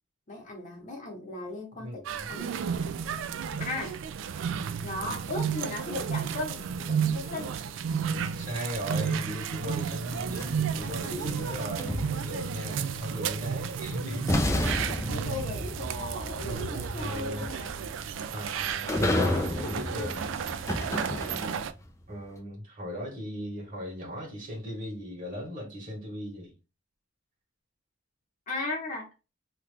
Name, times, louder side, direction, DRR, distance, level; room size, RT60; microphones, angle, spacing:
voice 1, 0.3-2.6 3.6-4.0 4.8-7.6 11.1-11.5 15.1-17.8 21.1-21.4 28.5-29.1, left 2 dB, 40° left, 1.0 m, -37 dB
voice 2, 1.7-2.3 8.3-14.9 16.9-17.4 18.3-20.3 22.1-26.5, equal, 40° right, 1.5 m, -38 dB
Kyoto-Zoo, 2.0-21.7, right 7 dB, 70° right, 0.3 m, -33 dB
sound 1, 10.1-12.5 13.7-13.8 14.3-21.8, left 1 dB, 15° left, 0.4 m, -32 dB
2.9 x 2.4 x 3.4 m
head